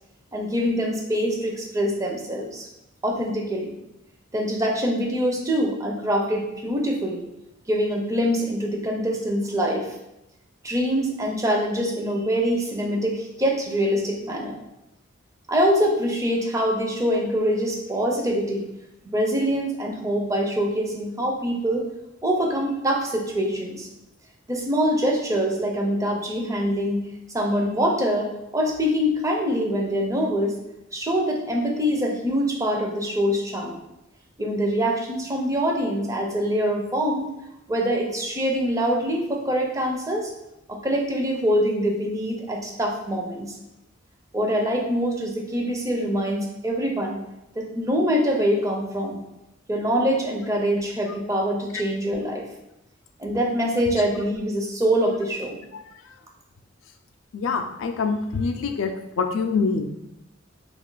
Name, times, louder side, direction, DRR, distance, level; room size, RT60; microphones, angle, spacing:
voice 1, 0.3-2.7 3.0-3.7 4.3-7.2 7.7-9.9 10.6-14.6 15.5-18.7 19.0-21.9 22.2-23.9 24.5-27.1 27.3-30.5 30.9-33.8 34.4-37.3 37.7-40.3 40.7-43.6 44.3-47.2 47.6-49.2 49.7-52.5 53.2-55.6, equal, 15° right, 0 dB, 0.4 m, -24 dB
voice 2, 57.3-59.9, left 4 dB, 70° left, 6 dB, 0.3 m, -25 dB
2.4 x 2.3 x 3.8 m, 0.88 s
head